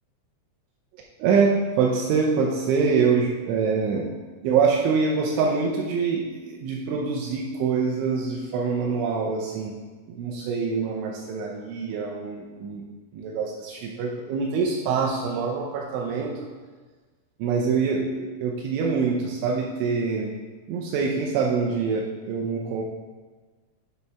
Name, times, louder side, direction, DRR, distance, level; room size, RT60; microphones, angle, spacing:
voice 1, 1.2-4.1 4.4-9.8 10.1-12.9 13.1-16.3 17.4-20.3 20.7-22.8, right 5 dB, 80° right, -2 dB, 3.0 m, -25 dB
8.2 x 4.1 x 5.7 m, 1.4 s
omnidirectional pair, 5.4 m